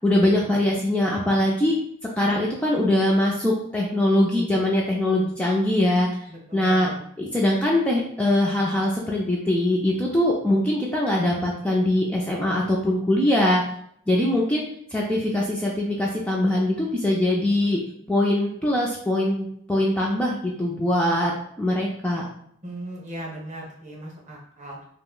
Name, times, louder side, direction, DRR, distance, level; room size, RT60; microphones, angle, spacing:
voice 1, 0.0-1.7 2.2-6.1 6.5-6.9 7.2-13.6 14.1-14.6 14.9-17.8 18.1-21.3 21.6-22.2, left 1 dB, 5° left, -3 dB, 0.3 m, -22 dB
voice 2, 6.3-7.0 22.6-24.9, right 1 dB, 35° right, -2 dB, 0.7 m, -38 dB
2.5 x 2.0 x 3.7 m, 0.67 s
head